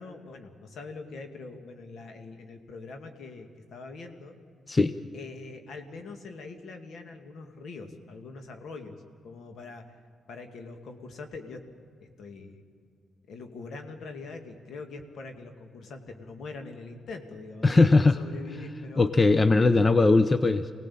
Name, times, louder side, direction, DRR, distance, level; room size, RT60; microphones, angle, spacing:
voice 1, 0.0-4.4 5.1-10.0 10.3-11.6 12.0-12.6 13.3-19.0 19.8-20.0, left 3 dB, 70° left, 5 dB, 2.2 m, -43 dB
voice 2, 17.6-18.2 19.0-20.7, left 3 dB, 30° left, 11 dB, 0.8 m, -20 dB
25.0 x 18.0 x 8.6 m, 2.3 s
cardioid pair, 65°, 0 cm